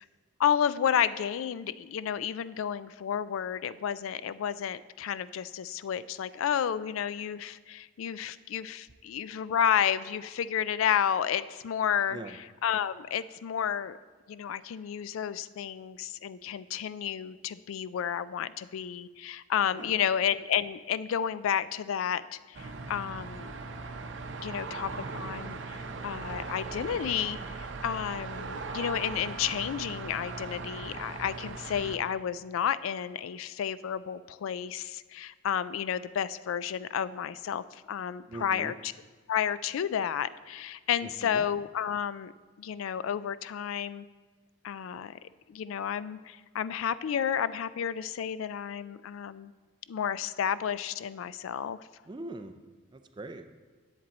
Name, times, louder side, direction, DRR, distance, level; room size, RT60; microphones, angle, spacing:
voice 1, 0.4-12.2 12.6-14.0 14.3-23.6 24.4-38.7 39.3-42.3 42.6-44.1 44.6-45.2 45.5-49.5 49.9-51.9, left 8 dB, 85° left, 16 dB, 0.3 m, -31 dB
voice 2, 19.7-20.1 38.3-38.7 41.0-41.5 52.0-52.5 52.9-53.5, right 2 dB, 20° right, 8 dB, 0.4 m, -42 dB
sound 1, 22.5-32.0, right 4 dB, 65° right, 0.6 m, -39 dB
10.5 x 7.5 x 4.1 m, 1.4 s
head